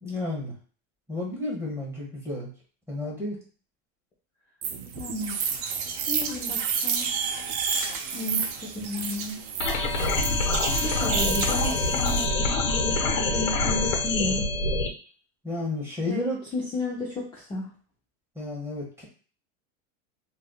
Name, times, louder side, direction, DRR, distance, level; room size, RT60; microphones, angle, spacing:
voice 1, 0.0-0.5 1.1-2.5 2.9-3.4 15.4-16.4 18.4-19.0, left 2 dB, 5° right, -3 dB, 1.0 m, -31 dB
sound 1, 4.6-12.2, right 6 dB, 50° right, 0.5 m, -30 dB
voice 2, 4.9-5.4 5.9-7.1 8.1-9.4 10.8-14.5 16.1-16.2 16.5-17.7, left 2 dB, 10° left, -4 dB, 0.5 m, -33 dB
sound 2, 9.6-14.9, left 2 dB, 80° left, 1.0 m, -25 dB
3.2 x 2.5 x 2.3 m, 0.40 s
supercardioid pair, 145°, 38 cm